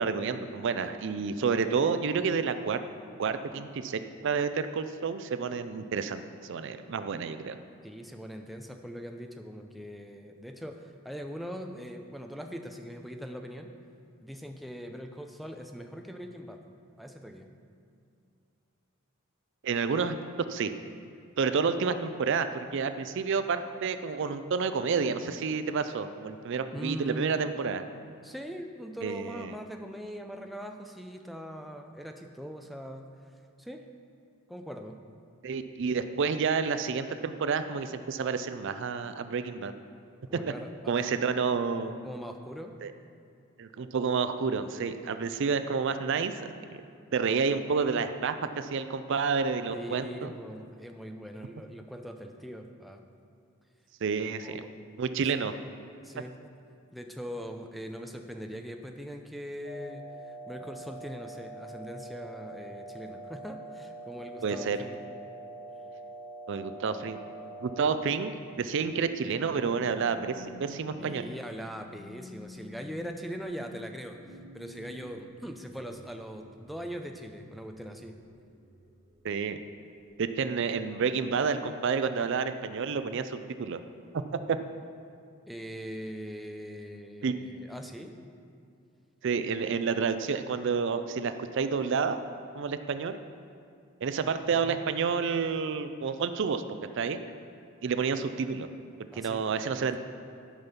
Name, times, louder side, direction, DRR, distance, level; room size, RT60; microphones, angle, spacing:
voice 1, 0.0-2.8 3.2-6.2 6.5-7.6 19.6-20.1 20.5-20.7 21.4-27.8 29.0-29.5 35.4-39.7 40.9-42.0 42.8-42.9 43.6-46.5 47.1-50.3 54.0-54.6 55.0-55.5 64.4-64.8 66.5-67.2 67.6-71.3 79.2-79.6 80.2-83.8 84.5-84.6 87.2-87.3 89.2-92.2 92.5-93.2 94.0-97.2 97.8-98.7 99.1-100.0, right 5 dB, 60° right, 11 dB, 0.4 m, -29 dB
voice 2, 7.8-13.7 14.2-16.6 17.0-17.5 26.7-27.5 28.2-33.1 33.6-33.8 34.5-35.0 40.3-41.3 42.0-42.8 49.7-53.0 54.4-54.7 56.0-56.4 56.9-60.1 60.5-65.0 71.0-78.2 85.5-88.2 94.5-95.1 99.1-99.8, equal, ahead, 4 dB, 0.5 m, -41 dB
sound 1, 59.6-68.0, right 2 dB, 40° left, 1.7 m, -44 dB
sound 2, 69.2-79.5 80.0-80.3, left 1 dB, 40° right, 1.2 m, -51 dB
11.5 x 5.4 x 5.8 m, 2.5 s
head